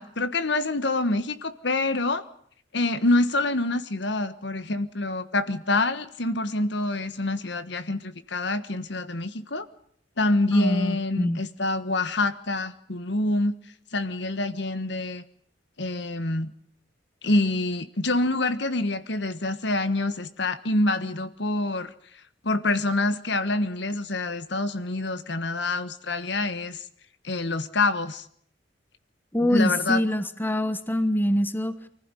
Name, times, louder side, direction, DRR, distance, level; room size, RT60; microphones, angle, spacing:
voice 1, 0.0-2.2 2.7-9.7 10.2-13.6 13.9-15.2 15.8-16.5 17.2-21.9 22.4-26.9 27.2-28.3 29.4-30.0, left 2 dB, 65° left, 12 dB, 1.5 m, -26 dB
voice 2, 10.5-11.4 29.3-31.7, equal, 10° left, 11 dB, 1.3 m, -24 dB
25.0 x 15.0 x 9.9 m, 0.63 s
head